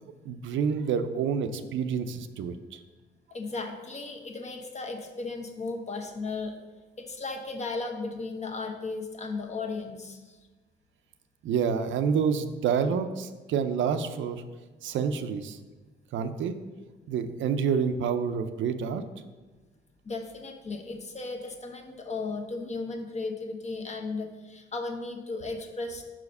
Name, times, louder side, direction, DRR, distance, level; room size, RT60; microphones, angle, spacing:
voice 1, 0.2-2.8 11.4-14.4 14.8-15.6 16.1-16.5 17.1-19.0, right 6 dB, 75° right, 9 dB, 0.5 m, -28 dB
voice 2, 3.3-6.5 7.0-10.4 20.0-26.0, left 3 dB, 35° left, 4 dB, 1.1 m, -35 dB
5.7 x 4.9 x 5.3 m, 1.3 s
cardioid pair, 90°, 20 cm